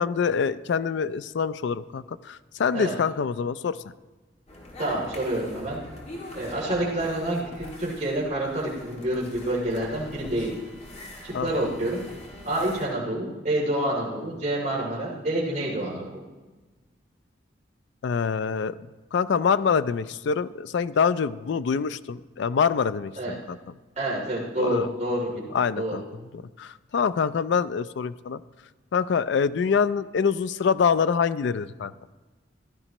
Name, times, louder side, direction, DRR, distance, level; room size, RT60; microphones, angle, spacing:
voice 1, 0.0-3.8 11.3-11.5 18.0-18.7 19.1-23.1 23.5-23.6 24.6-24.9 25.5-26.0 26.3-28.4 28.9-31.9, left 6 dB, 65° left, 15 dB, 0.4 m, -25 dB
sound 1, 4.5-12.8, left 1 dB, 40° left, 2.2 m, -43 dB
voice 2, 4.8-5.8 6.3-10.6 11.2-12.0 12.4-16.0 23.2-23.4 24.0-25.4 25.8-26.0, right 1 dB, 40° right, -7 dB, 2.8 m, -28 dB
15.5 x 12.5 x 3.0 m, 1.2 s
head